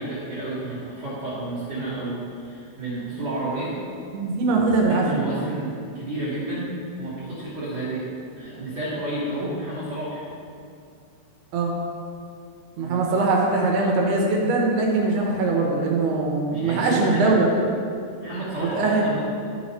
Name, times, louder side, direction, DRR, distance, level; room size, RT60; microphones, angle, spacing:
voice 1, 0.0-3.8 4.4-8.1 8.3-10.2 12.8-13.2 16.5-17.3 18.2-19.2, right 1 dB, 60° right, -10 dB, 1.7 m, -31 dB
voice 2, 4.1-5.0 11.5-11.7 12.8-17.8 18.7-19.0, right 3 dB, 75° right, -1 dB, 2.5 m, -21 dB
14.0 x 4.7 x 4.2 m, 2.4 s
omnidirectional pair, 5.6 m